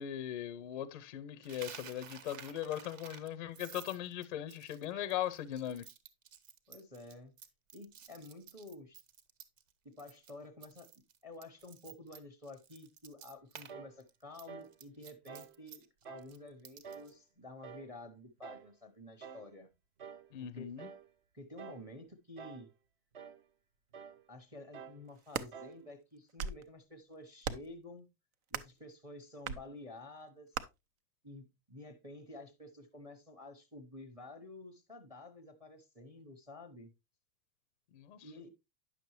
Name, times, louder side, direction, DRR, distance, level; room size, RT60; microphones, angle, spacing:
voice 1, 0.0-5.8 20.3-20.9 37.9-38.3, left 11 dB, 35° left, 0.4 m, -39 dB
Coin (dropping), 1.4-9.7 10.0-10.3 10.6-13.7 14.0-17.1, right 8 dB, 60° right, 1.2 m, -53 dB
voice 2, 6.7-7.3 7.7-9.0 9.8-10.9 11.2-19.7 20.4-20.8 21.3-22.7 24.3-28.1 28.5-30.5 31.2-36.9 38.2-38.5, left 2 dB, 10° right, 0.7 m, -51 dB
sound 1, 13.7-14.0 14.5-14.8 15.3-15.6 16.0-16.3 16.8-17.2 17.6-17.9 18.4-18.7 19.2-19.5 20.0-20.3 20.8-21.1 21.6-21.9 22.4-22.7 23.1-23.4 23.9-24.2 24.7-25.0 25.5-25.8, right 7 dB, 35° right, 0.4 m, -49 dB
sound 2, 25.1-25.5 26.2-26.7 27.4-27.8 28.5-28.8 29.4-29.6 30.5-30.7, right 7 dB, 75° right, 1.0 m, -38 dB
9.9 x 6.7 x 3.0 m
supercardioid pair, 175°, 43 cm